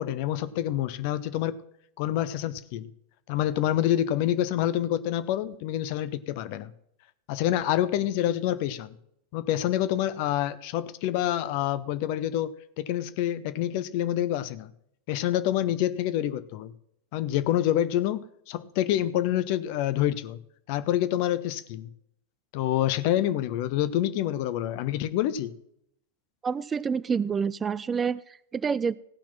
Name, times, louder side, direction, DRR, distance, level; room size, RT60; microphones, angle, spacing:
voice 1, 0.0-1.6 2.0-2.9 3.3-6.7 7.3-8.9 9.3-14.7 15.1-16.7 17.1-20.4 20.7-21.9 22.5-25.5, left 12 dB, 45° left, 0.7 m, -27 dB
voice 2, 26.4-28.9, right 6 dB, 20° right, 0.3 m, -28 dB
16.5 x 5.9 x 5.8 m
figure-of-eight pair, 90°, 0 cm